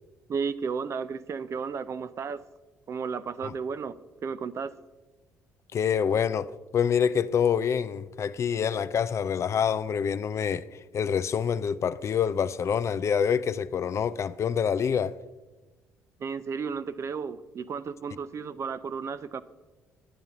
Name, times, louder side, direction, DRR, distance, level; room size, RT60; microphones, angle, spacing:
voice 1, 0.3-2.4 2.9-4.7 16.2-19.4, right 5 dB, 40° right, 0.4 m, -33 dB
voice 2, 5.7-15.1, left 7 dB, 40° left, 0.3 m, -26 dB
10.0 x 8.6 x 3.6 m
hypercardioid pair, 50°, 7 cm